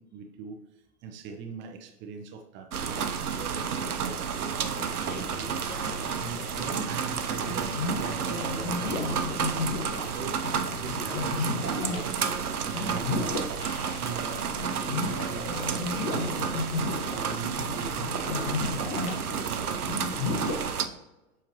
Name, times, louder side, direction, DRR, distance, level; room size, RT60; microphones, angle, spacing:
voice 1, 0.0-5.6 6.1-9.7 10.2-10.4 10.7-12.2 12.6-13.3 14.0-16.6 17.0-18.5 18.8-21.0, right 6 dB, 25° right, 5 dB, 0.6 m, -41 dB
sound 1, 2.7-20.9, right 7 dB, 85° right, 0.6 m, -31 dB
sound 2, 4.1-20.6, left 3 dB, 55° left, 1.5 m, -34 dB
voice 2, 5.6-6.3 8.5-8.7 9.0-9.7 10.0-10.2 12.6-14.2 14.6-14.7 15.3-15.7 16.0-17.2, left 1 dB, 75° left, 0 dB, 2.2 m, -52 dB
7.4 x 5.7 x 3.0 m, 1.0 s
figure-of-eight pair, 95°, 44 cm